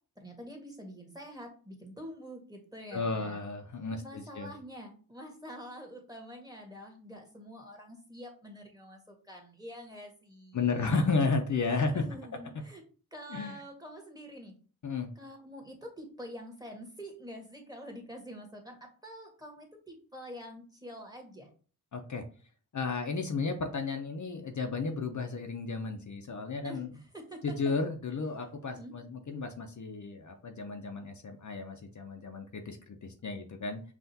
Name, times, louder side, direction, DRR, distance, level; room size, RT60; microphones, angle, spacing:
voice 1, 0.2-3.4 4.0-11.0 11.7-12.8 13.1-14.6 15.2-21.5 26.6-27.6 28.7-28.9, equal, 10° right, 2 dB, 1.4 m, -46 dB
voice 2, 2.9-4.5 10.5-12.0 13.3-13.6 14.8-15.1 21.9-22.2 22.7-26.9 27.4-33.8, left 4 dB, 50° left, 4 dB, 0.7 m, -33 dB
5.7 x 2.5 x 2.7 m, 0.39 s
cardioid pair, 65°, 37 cm